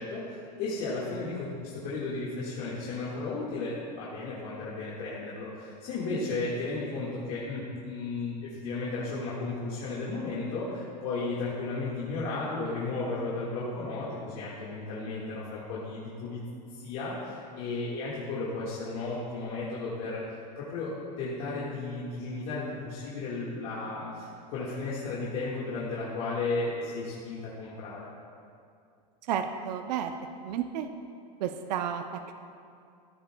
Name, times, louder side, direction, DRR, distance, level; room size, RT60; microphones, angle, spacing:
voice 1, 0.0-16.4 16.7-28.1, left 3 dB, 45° left, -8 dB, 1.7 m, -34 dB
voice 2, 29.2-30.1 30.4-30.9 31.4-32.3, right 9 dB, 75° right, 7 dB, 0.6 m, -32 dB
14.5 x 7.5 x 2.3 m, 2.4 s
supercardioid pair, 150°, 21 cm